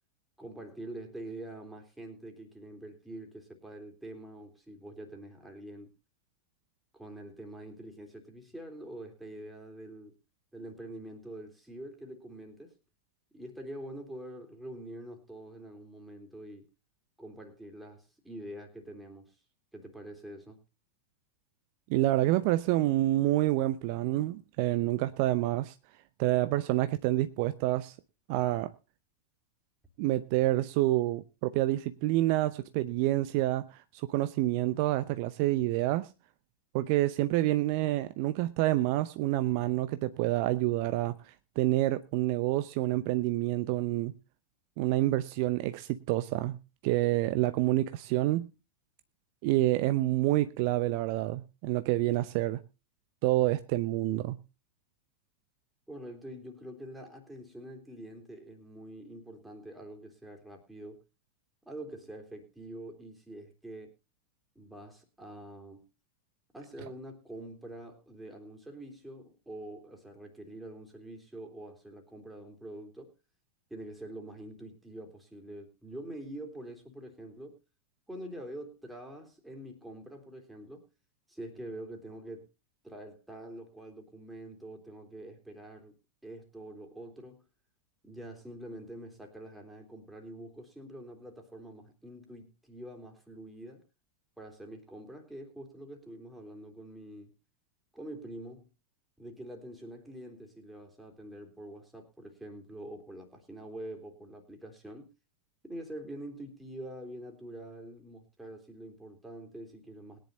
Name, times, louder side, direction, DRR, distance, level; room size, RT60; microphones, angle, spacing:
voice 1, 0.4-5.9 6.9-10.2 10.5-12.7 13.3-16.7 17.2-19.4 19.7-20.6 55.9-61.0 61.7-63.9 64.6-65.9 66.5-73.1 73.7-77.6 78.1-80.9 81.3-82.5 82.8-85.9 86.2-87.4 88.0-93.9 94.4-97.3 97.9-98.7 99.2-105.1 105.6-110.2, right 1 dB, 5° right, 3.5 m, -45 dB
voice 2, 21.9-25.7 26.2-27.9 28.3-28.7 30.0-36.1 36.7-44.1 44.8-46.6 46.8-48.5 49.4-52.6 53.2-54.4, right 16 dB, 45° right, 0.7 m, -28 dB
21.5 x 10.5 x 2.8 m
figure-of-eight pair, 90°, 0 cm